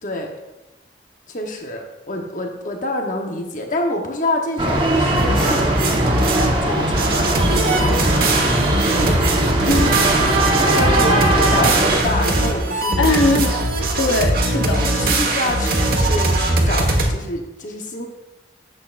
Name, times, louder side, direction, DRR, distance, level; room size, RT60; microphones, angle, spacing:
voice 1, 1.3-5.8 6.6-8.3 10.7-13.1 14.7-18.1, left 1 dB, 45° left, 2 dB, 1.0 m, -27 dB
sound 1, 4.6-12.0, right 1 dB, 30° right, 1.2 m, -19 dB
sound 2, 5.1-6.6 6.9-17.1, right 2 dB, 55° right, 1.3 m, -20 dB
voice 2, 9.7-10.0 13.0-14.8, left 2 dB, 85° left, 3 dB, 0.9 m, -21 dB
11.0 x 7.7 x 2.5 m, 1.0 s
head